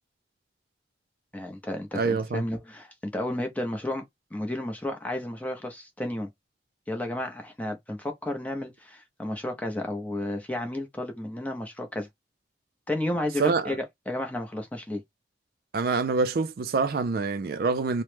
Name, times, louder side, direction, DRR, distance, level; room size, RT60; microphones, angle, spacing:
voice 1, 1.3-4.0 4.3-6.3 6.9-12.1 12.9-15.0, left 1 dB, 10° left, 0.6 m, -32 dB
voice 2, 1.9-2.4 13.4-13.8 15.7-18.0, right 4 dB, 55° right, 0.4 m, -26 dB
3.0 x 2.1 x 3.2 m
head